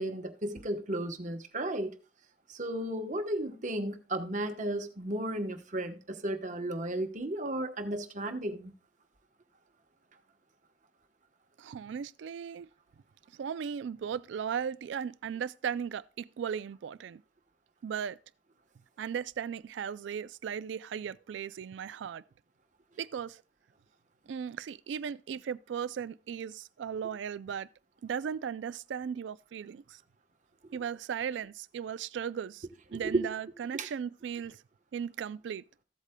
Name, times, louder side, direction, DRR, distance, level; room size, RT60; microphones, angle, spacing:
voice 1, 0.0-1.9 2.5-8.7 30.6-30.7 32.9-33.2 33.7-33.9, right 1 dB, 40° right, 1.0 m, -34 dB
voice 2, 11.6-12.7 13.4-17.2 17.8-18.2 19.0-22.2 23.0-23.4 24.3-27.7 28.0-30.0 30.7-34.6 34.9-35.6, right 7 dB, 75° right, 0.3 m, -37 dB
14.5 x 8.1 x 2.2 m
head